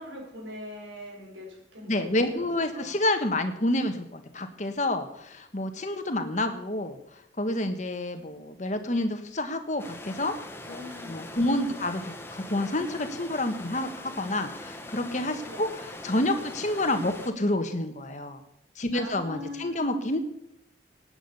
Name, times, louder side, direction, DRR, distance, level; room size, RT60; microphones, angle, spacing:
voice 1, 0.0-2.5 2.7-3.0 10.6-11.8 15.4-15.6 18.9-20.0, left 1 dB, 85° right, -1 dB, 4.9 m, -42 dB
voice 2, 1.9-7.0 7.4-10.3 10.7-12.0 12.3-18.4 18.8-20.2, left 1 dB, 40° left, 7 dB, 1.4 m, -29 dB
sound 1, 9.8-17.3, left 2 dB, 10° left, 1.1 m, -42 dB
18.5 x 8.9 x 5.6 m, 0.80 s
head